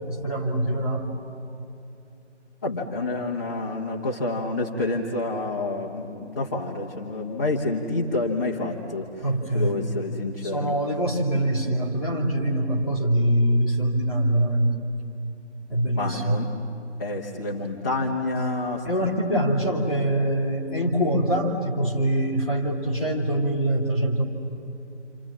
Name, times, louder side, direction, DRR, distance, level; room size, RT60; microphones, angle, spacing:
voice 1, 0.1-1.1 9.2-9.8 10.4-14.8 15.7-16.5 18.8-24.2, right 1 dB, ahead, -11 dB, 2.0 m, -24 dB
voice 2, 2.6-9.1 9.5-10.7 15.9-16.5 17.0-19.1, left 2 dB, 15° left, -5 dB, 1.0 m, -28 dB
28.5 x 27.5 x 7.3 m, 2.8 s
figure-of-eight pair, 160°, 36 cm